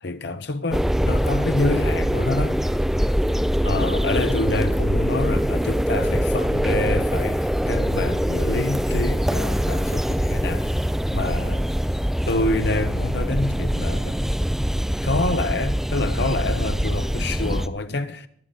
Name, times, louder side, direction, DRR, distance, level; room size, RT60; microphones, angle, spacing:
voice 1, 0.0-2.6 3.6-10.8 11.1-11.7 12.3-14.2 15.0-18.3, left 2 dB, 60° left, 0.9 m, -27 dB
sound 1, 0.7-17.7, equal, ahead, 0.4 m, -23 dB
23.5 x 8.1 x 4.0 m
head